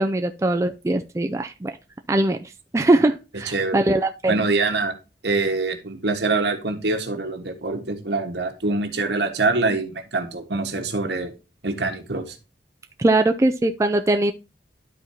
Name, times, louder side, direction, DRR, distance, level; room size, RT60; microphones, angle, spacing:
voice 1, 0.0-1.8 2.1-2.4 2.7-4.5 13.0-14.3, right 2 dB, 15° right, 6 dB, 0.3 m, -21 dB
voice 2, 3.5-3.8 4.3-4.9 5.2-11.3 11.6-12.3, right 3 dB, 75° right, 4 dB, 1.5 m, -24 dB
12.0 x 4.3 x 2.8 m, 0.30 s
head